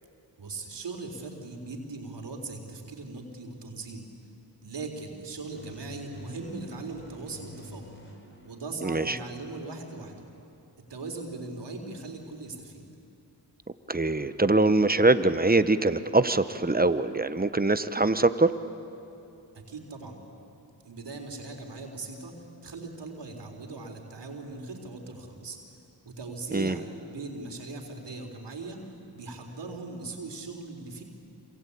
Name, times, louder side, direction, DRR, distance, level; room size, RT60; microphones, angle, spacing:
voice 1, 0.4-4.1 4.6-7.9 8.4-10.1 10.9-12.8 19.5-20.2 20.8-22.3 22.6-25.6 26.1-31.0, right 3 dB, 70° right, 3 dB, 4.0 m, -39 dB
sound 1, 5.5-9.3, left 2 dB, 25° left, 5.0 m, -48 dB
voice 2, 8.8-9.2 13.9-18.5 26.5-26.8, right 2 dB, 20° right, 12 dB, 1.2 m, -23 dB
27.0 x 25.5 x 8.7 m, 2.8 s
cardioid pair, 50°, 43 cm